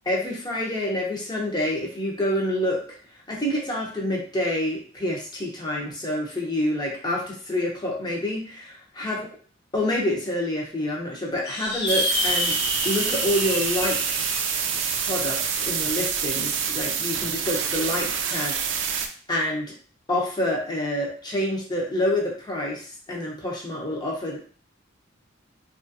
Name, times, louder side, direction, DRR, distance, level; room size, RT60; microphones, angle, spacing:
voice 1, 0.1-2.8 3.3-9.2 9.7-12.6 12.8-14.3 15.0-19.7 20.1-24.4, left 1 dB, 20° left, -1 dB, 0.7 m, -27 dB
sound 1, 11.4-16.2, left 3 dB, 55° left, 0.7 m, -30 dB
sound 2, 11.9-19.1, right 7 dB, 65° right, 0.4 m, -27 dB
3.0 x 2.4 x 2.7 m, 0.41 s
head